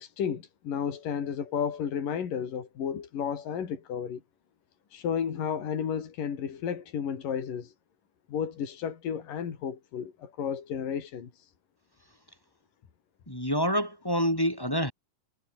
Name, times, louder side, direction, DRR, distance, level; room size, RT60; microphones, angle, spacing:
voice 1, 0.0-4.2 4.9-7.7 8.3-11.5, left 7 dB, 80° left, 4.5 m, -32 dB
voice 2, 13.3-14.9, equal, 5° left, 2.8 m, -27 dB
omnidirectional pair, 3.8 m